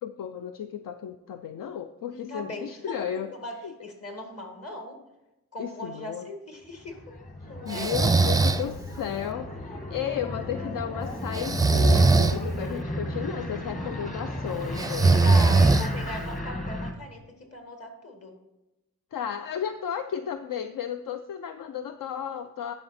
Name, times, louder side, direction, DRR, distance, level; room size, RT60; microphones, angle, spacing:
voice 1, 0.0-3.3 3.6-3.7 5.6-6.3 7.6-15.2 19.1-22.7, left 9 dB, 70° left, 8 dB, 0.5 m, -34 dB
voice 2, 2.1-5.0 5.5-7.1 7.5-7.9 15.2-18.3, left 1 dB, 45° left, 3 dB, 1.9 m, -39 dB
sound 1, 6.7-16.9, left 1 dB, 25° left, 1.4 m, -35 dB
Breathing, 7.7-8.7 11.3-12.4 14.8-16.2, right 3 dB, 10° right, 0.4 m, -20 dB
11.5 x 4.9 x 4.2 m, 0.97 s
cardioid pair, 85°, 34 cm